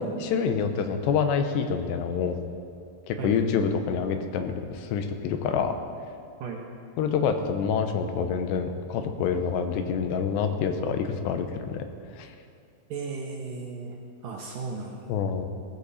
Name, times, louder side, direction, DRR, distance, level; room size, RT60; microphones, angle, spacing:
voice 1, 0.0-2.4 3.1-5.7 7.0-11.8 12.2-12.3 15.1-15.5, left 6 dB, 80° left, 7 dB, 3.0 m, -27 dB
voice 2, 12.9-14.0 14.2-15.1, right 4 dB, 70° right, 0 dB, 2.2 m, -35 dB
17.0 x 13.5 x 4.2 m, 2.3 s
omnidirectional pair, 4.9 m